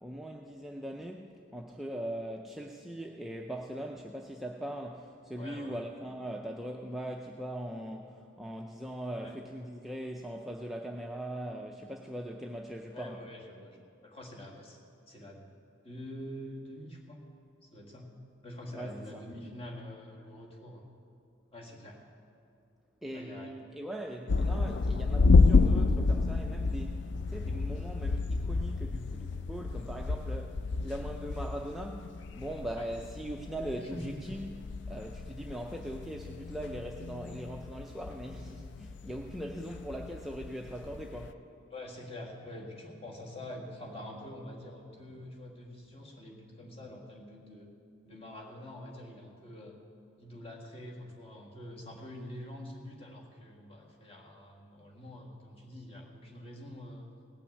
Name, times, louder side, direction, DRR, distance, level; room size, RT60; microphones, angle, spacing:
voice 1, 0.0-13.2 18.7-19.2 23.0-41.4, right 1 dB, ahead, 0 dB, 0.5 m, -40 dB
voice 2, 5.4-5.8 9.2-9.4 12.9-14.8 15.1-15.5 15.8-17.2 17.6-18.1 18.4-20.8 21.5-22.0 23.1-23.5 32.8-32.9 33.8-34.3 41.7-47.7 48.0-49.8 50.2-57.1, left 1 dB, 30° left, -1 dB, 1.9 m, -46 dB
sound 1, 24.3-41.3, left 3 dB, 60° left, 0.4 m, -30 dB
17.5 x 6.0 x 8.4 m, 2.5 s
head